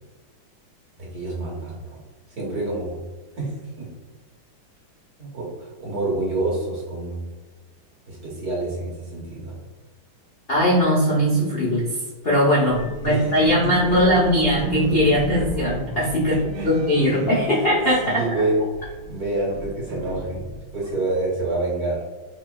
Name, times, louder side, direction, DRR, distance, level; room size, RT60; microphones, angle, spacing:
voice 1, 1.0-2.0 2.3-3.0 3.3-3.9 5.2-7.2 8.1-9.6 12.8-14.0 16.3-16.7 17.0-17.7 18.0-20.4 20.7-22.0, right 2 dB, 50° right, -5 dB, 1.5 m, -28 dB
voice 2, 10.5-12.0 12.2-16.4 16.6-18.2, equal, 80° left, -7 dB, 0.5 m, -20 dB
sound 1, 12.7-18.3 18.6-20.8, right 2 dB, 85° right, 0.8 m, -32 dB
4.8 x 2.8 x 2.3 m, 1.3 s
omnidirectional pair, 2.4 m